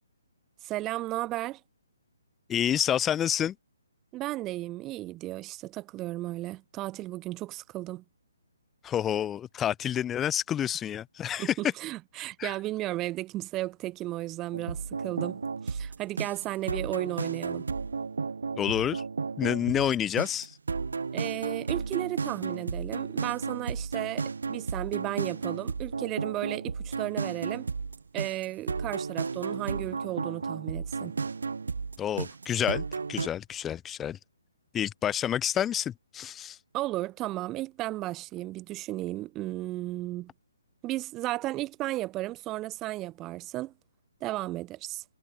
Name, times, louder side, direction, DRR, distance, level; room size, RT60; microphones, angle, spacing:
voice 1, 0.6-1.6 4.1-8.0 11.4-17.6 21.1-27.7 28.1-31.2 36.7-40.3 40.8-43.7 44.2-45.0, right 17 dB, 20° right, 1.7 m, -34 dB
voice 2, 2.5-3.5 8.8-11.5 12.4-12.5 18.6-19.0 19.4-20.6 32.0-34.2 34.7-36.6, left 10 dB, 15° left, 0.8 m, -29 dB
synth loop, 14.5-33.3, right 4 dB, 65° right, 4.2 m, -33 dB
figure-of-eight pair, 135°, 0 cm